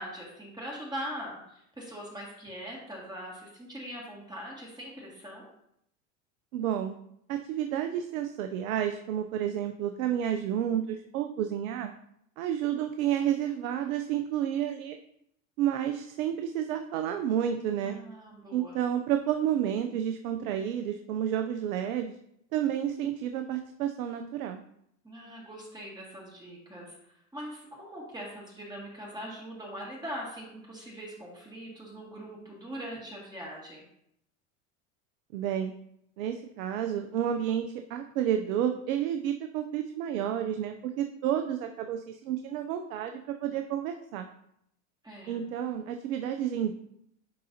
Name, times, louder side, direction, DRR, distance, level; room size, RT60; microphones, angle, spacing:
voice 1, 0.0-5.5 17.8-18.8 25.0-33.9 45.0-45.5, equal, 10° right, -4 dB, 2.2 m, -42 dB
voice 2, 6.5-7.0 7.3-11.9 12.4-15.0 15.6-18.0 18.5-22.1 22.5-24.6 35.3-35.7 36.2-44.3 45.3-46.7, right 10 dB, 80° right, 6 dB, 0.6 m, -30 dB
10.5 x 3.8 x 2.8 m, 0.74 s
hypercardioid pair, 90°, 41 cm